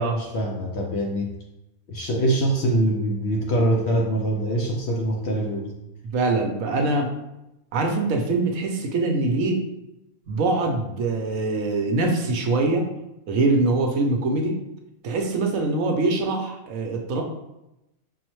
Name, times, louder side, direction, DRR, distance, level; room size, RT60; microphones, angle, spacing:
voice 1, 0.0-1.3 1.9-5.7, right 1 dB, 65° left, -1 dB, 0.7 m, -24 dB
voice 2, 6.1-7.1 7.7-9.6 10.3-12.9 13.3-14.6 15.0-17.2, right 2 dB, 70° right, 3 dB, 1.0 m, -23 dB
5.4 x 2.1 x 3.0 m, 0.91 s
omnidirectional pair, 1.5 m